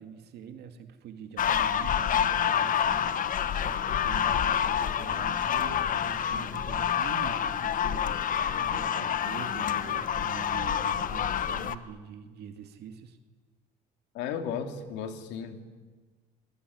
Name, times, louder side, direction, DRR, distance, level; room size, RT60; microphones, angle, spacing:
voice 1, 0.0-13.2, right 8 dB, 65° right, 7 dB, 2.3 m, -44 dB
sound 1, 1.4-11.8, left 9 dB, 50° left, 1.3 m, -28 dB
voice 2, 14.1-15.7, left 7 dB, 80° left, 6 dB, 3.0 m, -35 dB
27.5 x 21.5 x 9.7 m, 1.4 s
cardioid pair, 100°, 18 cm